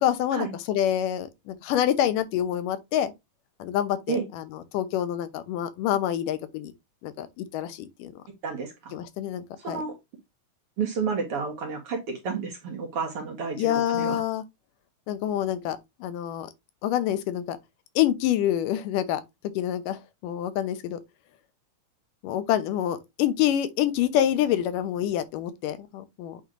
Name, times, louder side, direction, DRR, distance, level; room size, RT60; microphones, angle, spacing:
voice 1, 0.0-3.1 3.6-6.7 7.0-8.2 8.9-9.8 13.6-14.4 15.1-16.5 16.8-17.6 18.0-19.2 19.6-21.0 22.2-26.4, left 11 dB, 85° left, 2.5 m, -27 dB
voice 2, 8.4-9.0 9.6-10.0 10.8-14.2, right 5 dB, 50° right, 2.2 m, -31 dB
8.8 x 3.1 x 3.8 m
omnidirectional pair, 3.7 m